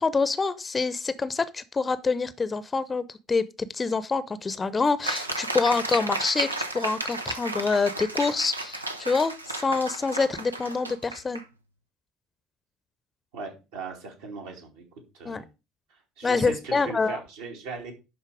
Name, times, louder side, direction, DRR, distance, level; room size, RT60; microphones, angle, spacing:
voice 1, 0.0-6.5 6.7-11.4 15.2-15.4 16.2-17.2, left 4 dB, 25° left, 0.8 m, -26 dB
sound 1, 5.0-11.4, right 2 dB, 85° right, 0.7 m, -33 dB
voice 2, 13.3-14.8 15.1-15.5 15.9-17.9, right 4 dB, 65° right, 2.6 m, -38 dB
11.0 x 4.3 x 5.0 m
figure-of-eight pair, 60°, 0 cm